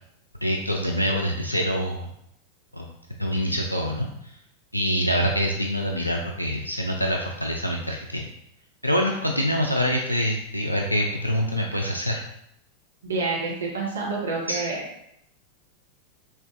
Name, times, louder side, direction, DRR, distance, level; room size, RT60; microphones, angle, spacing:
voice 1, 0.4-2.1 2.7-2.9 3.2-4.1 4.7-8.3 8.8-12.2 14.5-14.6, equal, 90° left, 1 dB, 0.3 m, -25 dB
voice 2, 13.0-14.8, right 3 dB, 70° right, -3 dB, 0.9 m, -28 dB
5.4 x 2.5 x 2.4 m, 0.76 s
figure-of-eight pair, 90°, 0 cm